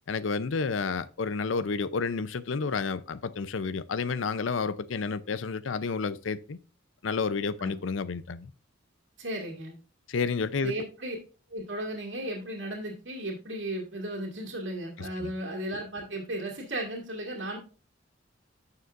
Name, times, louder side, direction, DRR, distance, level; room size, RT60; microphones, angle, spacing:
voice 1, 0.1-6.6 7.0-8.5 10.1-10.7 15.0-15.3, left 4 dB, 75° left, 0.5 m, -30 dB
voice 2, 9.2-9.8 10.6-11.2 11.5-17.6, right 1 dB, 70° right, 2.2 m, -35 dB
11.0 x 6.7 x 2.5 m
head